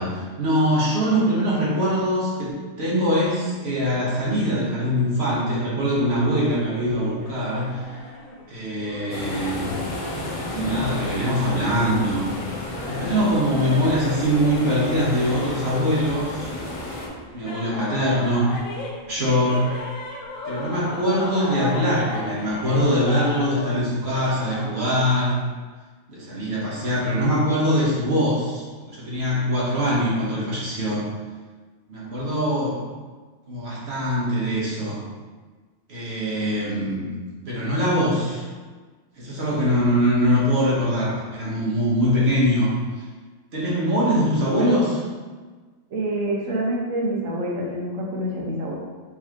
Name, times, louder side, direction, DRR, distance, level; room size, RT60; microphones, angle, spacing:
voice 1, 0.0-2.5 2.8-7.8 8.5-9.8 10.5-12.3 12.9-16.5 17.3-18.6 19.1-19.6 20.4-25.4 26.1-31.0 31.9-32.8 33.5-35.0 35.9-37.2 37.4-38.4 39.2-42.7 43.5-45.0, equal, 55° right, -6 dB, 1.3 m, -22 dB
sound 1, 6.2-24.7, left 1 dB, 75° left, 1.1 m, -37 dB
sound 2, 9.1-17.1, left 2 dB, 45° left, 0.4 m, -32 dB
voice 2, 45.9-48.7, right 1 dB, 80° right, -3 dB, 1.2 m, -26 dB
4.8 x 3.2 x 2.9 m, 1.4 s
omnidirectional pair, 1.4 m